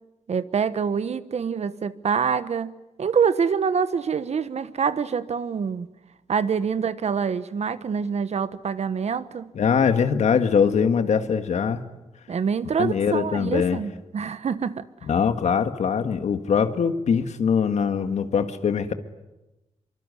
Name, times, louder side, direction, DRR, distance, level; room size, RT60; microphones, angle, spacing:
voice 1, 0.3-5.9 6.3-9.5 12.3-14.9, right 6 dB, 70° right, 1.2 m, -26 dB
voice 2, 9.6-11.8 12.8-13.8 15.0-18.9, left 6 dB, 85° left, 1.8 m, -22 dB
24.5 x 24.5 x 9.9 m
cardioid pair, 70°, 12 cm